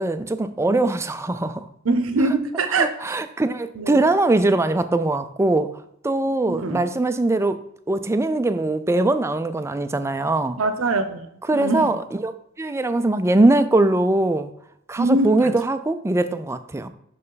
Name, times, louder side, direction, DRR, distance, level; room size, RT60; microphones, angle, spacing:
voice 1, 0.0-1.7 2.8-5.7 6.0-10.6 11.5-14.5 14.9-16.9, right 2 dB, 15° right, 10 dB, 0.4 m, -21 dB
voice 2, 1.8-3.0 3.8-4.1 6.4-6.8 10.6-11.3 11.5-11.9 15.0-15.5, right 2 dB, 90° right, 10 dB, 0.7 m, -23 dB
5.7 x 5.4 x 3.9 m, 0.76 s
head